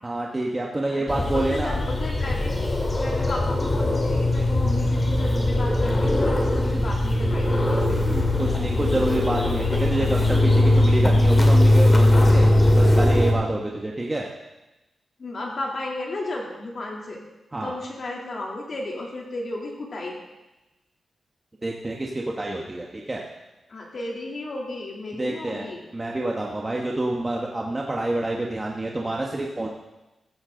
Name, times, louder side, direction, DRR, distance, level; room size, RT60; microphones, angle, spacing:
voice 1, 0.0-1.8 8.1-12.4 12.7-14.3 17.5-17.7 21.6-23.2 25.2-25.7 25.9-29.7, right 2 dB, 20° right, -1 dB, 1.2 m, -27 dB
voice 2, 0.9-2.5 3.0-7.8 12.1-12.3 15.2-17.2 17.6-20.2 23.7-25.9, left 2 dB, 45° left, -2 dB, 2.9 m, -33 dB
sound 1, 1.1-13.3, left 1 dB, 20° left, 2.4 m, -20 dB
15.0 x 14.5 x 3.8 m, 1.0 s
wide cardioid pair, 160°, 0 cm